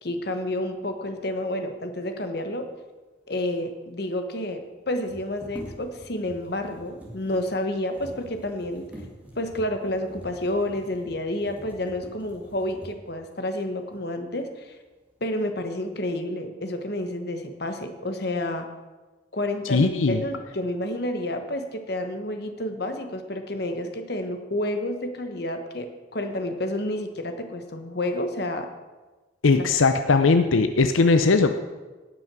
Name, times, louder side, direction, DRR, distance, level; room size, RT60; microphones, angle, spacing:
voice 1, 0.0-2.7 3.3-8.9 9.4-14.8 15.2-18.7 19.3-28.7 29.5-29.6, left 1 dB, 55° left, 6 dB, 1.2 m, -30 dB
sound 1, 3.4-3.5 3.7-3.8 4.9-13.2 13.9-14.0 14.5-15.1 15.5-16.0, right 1 dB, 5° right, 2.2 m, -45 dB
voice 2, 19.7-20.2 29.4-31.5, left 4 dB, 90° left, 8 dB, 0.6 m, -19 dB
18.0 x 6.2 x 6.1 m, 1.3 s
head